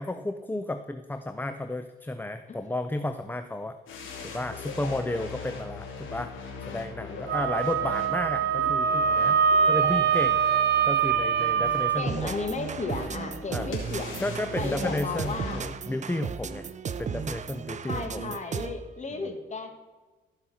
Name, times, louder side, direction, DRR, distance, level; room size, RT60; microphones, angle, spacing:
voice 1, 0.0-3.8 4.2-6.3 6.7-9.4 9.6-10.4 10.9-12.4 13.5-13.7 14.2-18.4, left 1 dB, 10° left, 9 dB, 0.6 m, -33 dB
sound 1, 3.9-15.7, left 4 dB, 85° left, 3.1 m, -40 dB
Wind instrument woodwind instrument, 7.3-12.0, right 7 dB, 60° right, 1.0 m, -23 dB
voice 2, 12.0-14.2 14.6-15.6 17.8-19.7, left 3 dB, 35° left, 5 dB, 2.0 m, -34 dB
sound 2, 12.1-18.9, right 6 dB, 35° right, 0.7 m, -35 dB
14.5 x 5.7 x 6.2 m, 1.2 s
cardioid pair, 90°, 20 cm